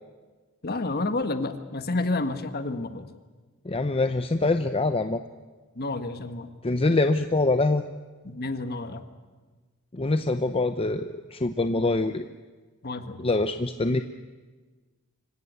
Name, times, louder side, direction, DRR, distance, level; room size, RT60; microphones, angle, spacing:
voice 1, 0.6-3.1 5.7-6.5 8.2-9.0 11.6-11.9 12.8-13.3, left 2 dB, 45° left, 9 dB, 1.5 m, -30 dB
voice 2, 3.7-5.2 6.6-7.8 9.9-12.2 13.2-14.0, left 2 dB, 25° left, 9 dB, 0.7 m, -24 dB
25.5 x 16.5 x 9.5 m, 1.3 s
head